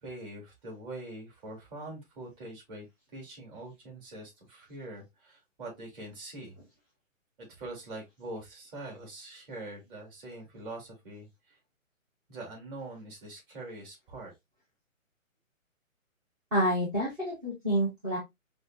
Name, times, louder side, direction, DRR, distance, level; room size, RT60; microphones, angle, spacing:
voice 1, 0.0-2.9 3.1-6.6 7.4-11.6 12.3-14.3, right 2 dB, 40° right, 2.6 m, -43 dB
voice 2, 16.5-18.2, equal, 10° right, 0.5 m, -28 dB
5.2 x 2.4 x 2.4 m
hypercardioid pair, 145°, 41 cm